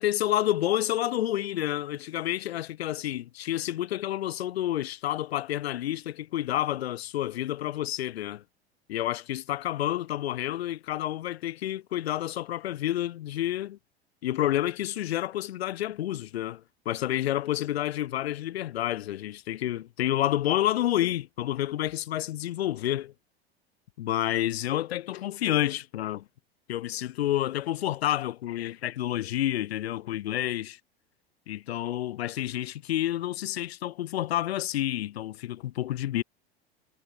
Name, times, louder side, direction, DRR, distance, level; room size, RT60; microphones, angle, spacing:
voice 1, 0.0-8.4 8.9-13.8 14.2-23.1 24.0-26.2 26.7-30.8 31.5-36.2, left 13 dB, 75° left, 2.4 m, -29 dB
hypercardioid pair, 85°, 32 cm